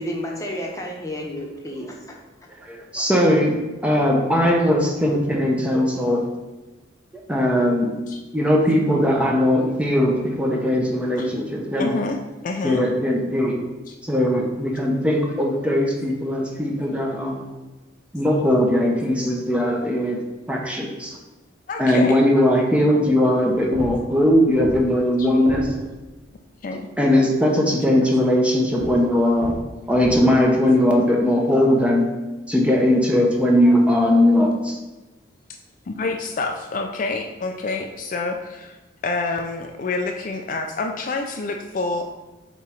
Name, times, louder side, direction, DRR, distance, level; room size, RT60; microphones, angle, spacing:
voice 1, 0.0-2.2, equal, 15° left, -1 dB, 0.9 m, -31 dB
voice 2, 2.6-6.3 7.3-8.0 8.3-12.0 12.6-13.6 14.0-17.4 18.1-20.2 20.5-21.2 21.8-25.8 27.0-29.6 29.9-32.1 32.5-34.8, left 1 dB, 5° right, 0 dB, 0.7 m, -19 dB
voice 3, 11.8-12.2 12.4-12.8 13.9-14.0 21.7-22.2 25.2-25.3 26.6-26.9 35.9-38.7 39.0-42.0, left 3 dB, 45° left, 3 dB, 0.4 m, -27 dB
sound 1, 23.5-26.3 28.7-30.2, equal, 85° right, 1.4 m, -34 dB
7.3 x 3.0 x 4.4 m, 1.1 s
head